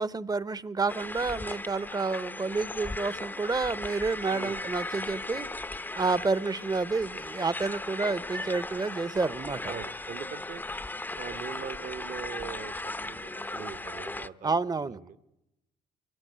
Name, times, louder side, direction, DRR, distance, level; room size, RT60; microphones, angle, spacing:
voice 1, 0.0-5.5 5.9-9.7 14.4-15.0, right 4 dB, 25° right, 17 dB, 0.9 m, -29 dB
sound 1, 0.9-14.3, left 2 dB, 10° left, 0.7 m, -37 dB
voice 2, 9.7-10.6 11.2-14.6 14.8-15.2, right 7 dB, 55° right, 11 dB, 1.3 m, -41 dB
24.0 x 16.0 x 9.7 m, 0.92 s
supercardioid pair, 65°, 16 cm